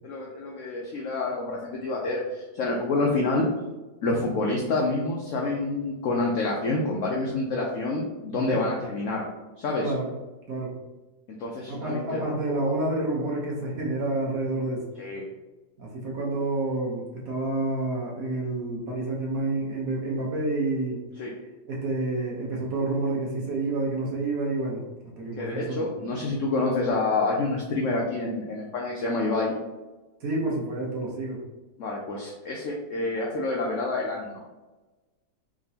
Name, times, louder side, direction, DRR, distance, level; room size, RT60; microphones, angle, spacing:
voice 1, 0.0-3.5 4.0-9.2 9.6-9.9 11.4-12.4 12.6-12.8 15.0-15.2 21.2-21.3 25.4-29.5 31.8-34.4, left 2 dB, 65° left, -1 dB, 0.8 m, -28 dB
voice 2, 11.7-14.9 15.8-21.0 21.7-24.8 25.2-25.9 30.2-31.4, right 2 dB, 55° right, -3 dB, 1.4 m, -29 dB
4.8 x 3.6 x 2.8 m, 1.2 s
omnidirectional pair, 1.9 m